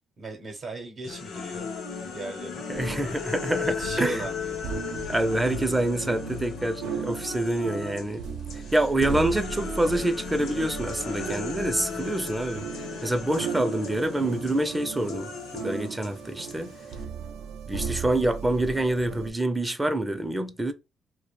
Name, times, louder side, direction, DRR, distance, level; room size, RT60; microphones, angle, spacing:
voice 1, 0.2-1.7 2.1-2.6 3.6-4.7, right 3 dB, 55° right, 0.7 m, -37 dB
sound 1, 1.0-8.1 8.5-17.0, left 5 dB, 70° left, 0.6 m, -36 dB
voice 2, 2.7-4.1 5.1-8.2 8.7-12.7 13.0-16.7 17.7-20.7, right 1 dB, 10° right, 0.4 m, -26 dB
sound 2, 2.7-19.3, right 6 dB, 90° right, 0.4 m, -37 dB
2.3 x 2.1 x 3.0 m
cardioid pair, 90°, 0 cm